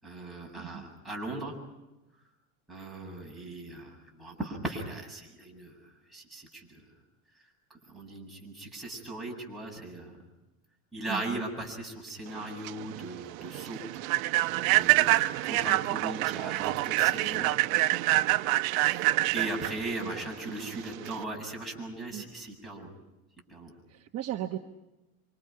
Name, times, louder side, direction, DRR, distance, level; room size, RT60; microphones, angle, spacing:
voice 1, 0.0-1.6 2.7-5.8 6.1-6.8 7.9-10.2 10.9-13.8 14.7-17.5 18.7-22.9 23.5-23.7, right 2 dB, ahead, -4 dB, 7.5 m, -38 dB
voice 2, 11.1-11.4 20.5-20.8 22.1-22.2 23.9-24.6, right 12 dB, 35° right, 3 dB, 1.2 m, -37 dB
Human voice / Train, 12.4-21.2, right 18 dB, 80° right, 1.0 m, -26 dB
27.5 x 26.0 x 5.9 m, 1.0 s
supercardioid pair, 140°, 40 cm